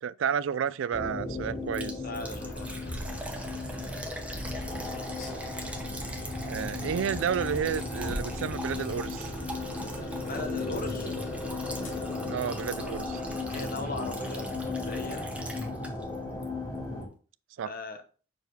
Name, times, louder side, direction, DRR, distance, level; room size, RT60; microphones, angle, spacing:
voice 1, 0.0-1.9 6.4-9.3 12.3-13.2 17.6-17.7, right 7 dB, 70° right, 0.3 m, -31 dB
sound 1, 0.9-17.1, left 2 dB, 20° left, 1.9 m, -36 dB
Liquid, 1.7-16.2 16.4-16.5 17.0-17.1, right 1 dB, 5° right, 0.9 m, -43 dB
voice 2, 2.0-2.8 10.3-11.2 13.5-15.3 17.6-18.0, left 2 dB, 50° left, 1.0 m, -39 dB
sound 2, 2.3-14.2, left 1 dB, 90° left, 2.3 m, -43 dB
6.1 x 4.7 x 4.0 m
head